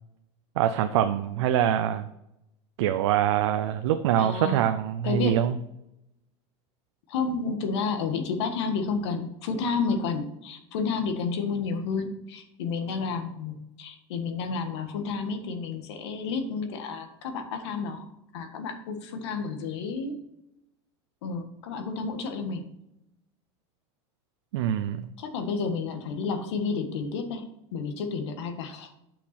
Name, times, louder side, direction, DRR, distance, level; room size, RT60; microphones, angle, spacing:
voice 1, 0.6-2.1 2.8-5.6 24.5-25.1, right 11 dB, 90° right, 8 dB, 0.6 m, -24 dB
voice 2, 4.2-4.6 5.0-5.5 7.1-18.1 18.3-20.2 21.2-22.6 25.2-28.9, left 4 dB, 80° left, 6 dB, 1.5 m, -31 dB
8.4 x 5.9 x 4.3 m, 0.84 s
supercardioid pair, 175°, 14 cm